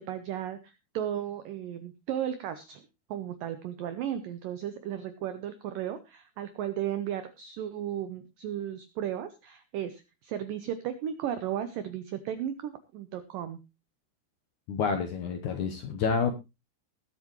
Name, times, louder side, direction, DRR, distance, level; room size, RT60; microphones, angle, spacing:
voice 1, 0.0-2.8 3.1-13.6, right 10 dB, 80° right, 10 dB, 2.0 m, -35 dB
voice 2, 14.7-16.3, left 5 dB, 85° left, 5 dB, 1.7 m, -28 dB
21.0 x 8.3 x 3.1 m, 0.25 s
omnidirectional pair, 5.1 m